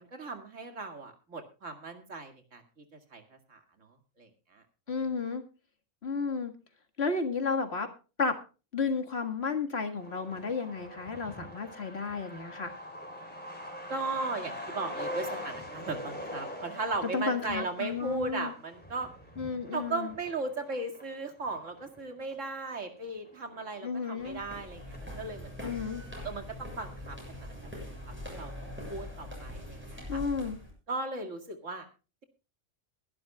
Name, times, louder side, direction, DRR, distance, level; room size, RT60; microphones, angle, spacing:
voice 1, 0.0-2.6 3.1-3.6 4.2-4.6 13.9-19.1 19.7-25.7 26.2-27.8 28.2-30.2 30.9-31.9, right 3 dB, 70° right, 6 dB, 2.5 m, -37 dB
voice 2, 4.9-5.4 6.0-6.5 7.0-7.9 8.2-8.4 8.7-12.7 17.1-18.5 19.4-20.1 23.8-24.4 25.6-26.0 30.1-30.6, left 4 dB, 55° left, 7 dB, 2.0 m, -32 dB
Truck, 10.0-25.1 25.5-25.6 25.8-26.7 27.0-27.1 27.4-27.8, left 1 dB, 5° left, 3.8 m, -44 dB
sound 1, 24.2-30.7, left 1 dB, 10° right, 7.1 m, -43 dB
22.5 x 11.5 x 2.3 m, 0.33 s
omnidirectional pair, 1.3 m